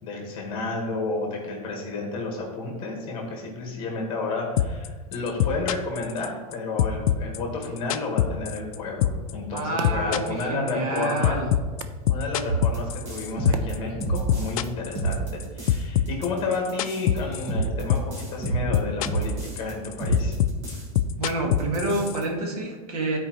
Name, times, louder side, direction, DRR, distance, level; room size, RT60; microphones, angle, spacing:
voice 1, 0.0-11.4 12.1-20.3, left 3 dB, 25° left, 0 dB, 1.6 m, -31 dB
sound 1, 4.6-4.9 5.1-6.5 6.8-8.8 9.0-9.3 9.6-13.8 14.0-15.4 15.7-17.6 17.9-18.2 18.5-19.3 19.6-22.2, left 12 dB, 65° left, 0.4 m, -23 dB
sound 2, 9.4-14.4, right 6 dB, 60° right, 0.6 m, -42 dB
voice 2, 9.5-11.5 21.2-23.2, right 2 dB, 75° right, 1 dB, 1.7 m, -28 dB
sound 3, 12.5-14.7 15.0-15.8 16.1-19.7 20.0-21.0 21.3-21.4 21.6-22.3, right 3 dB, 35° right, 1.5 m, -29 dB
12.5 x 4.7 x 3.1 m, 1.4 s
supercardioid pair, 170°, 20 cm